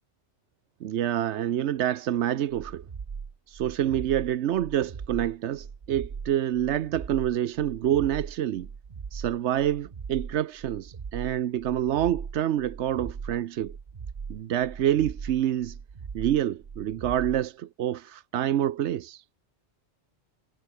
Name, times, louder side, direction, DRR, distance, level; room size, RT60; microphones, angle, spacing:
voice 1, 0.8-2.8 3.5-8.7 9.1-13.8 14.3-15.8 16.1-19.2, right 11 dB, 90° right, 1.0 m, -27 dB
sound 1, 2.5-17.5, right 5 dB, 40° right, 1.1 m, -39 dB
omnidirectional pair, 1.1 m